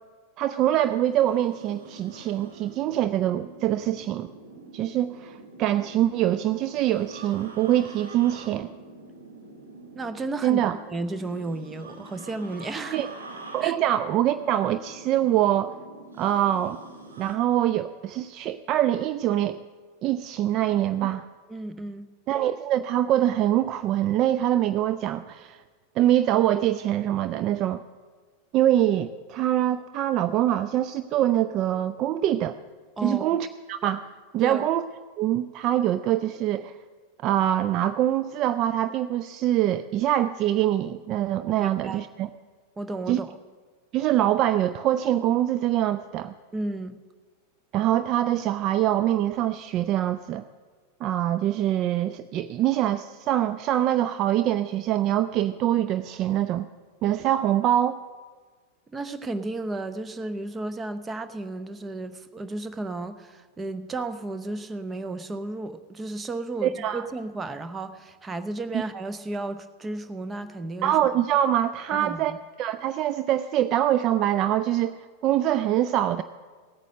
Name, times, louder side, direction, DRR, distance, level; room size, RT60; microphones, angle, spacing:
voice 1, 0.4-4.3 4.7-8.7 10.4-10.8 12.9-13.1 13.5-15.7 16.2-16.8 17.2-19.6 20.0-21.2 22.3-25.6 26.0-27.8 28.5-32.6 33.0-34.0 34.3-34.8 35.2-36.8 37.2-42.3 43.1-43.2 43.9-46.3 47.7-50.4 51.0-56.7 57.0-58.0 66.6-67.0 68.7-68.8 70.8-72.3 72.6-76.2, right 12 dB, 35° right, 12 dB, 0.3 m, -24 dB
sound 1, 0.8-17.4, right 3 dB, 75° right, 2.0 m, -45 dB
voice 2, 9.9-13.1 13.6-13.7 21.0-21.2 21.5-22.1 33.0-33.4 34.4-34.6 41.6-42.1 42.8-43.3 46.5-47.0 58.9-71.0 71.9-72.4, right 2 dB, 15° right, 11 dB, 0.7 m, -33 dB
16.0 x 9.0 x 6.5 m, 1.5 s
figure-of-eight pair, 90°, 0 cm